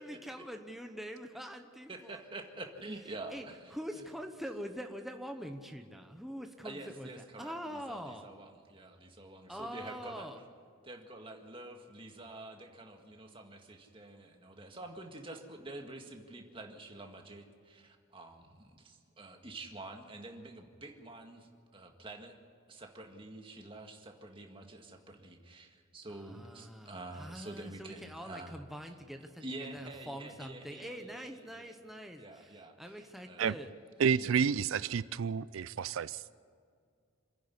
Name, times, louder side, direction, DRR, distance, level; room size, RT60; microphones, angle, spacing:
voice 1, 0.0-2.2 3.3-3.5 3.7-8.3 9.5-10.4 26.1-29.5 29.7-33.7, equal, ahead, 0.9 m, -44 dB
voice 2, 1.9-4.0 6.6-10.3 10.8-22.4 22.7-28.6 29.4-31.7 32.2-33.5 34.1-34.4 34.7-35.0, right 2 dB, 25° right, 1.9 m, -47 dB
voice 3, 34.0-36.2, right 6 dB, 85° right, 0.4 m, -30 dB
27.5 x 10.5 x 9.6 m
head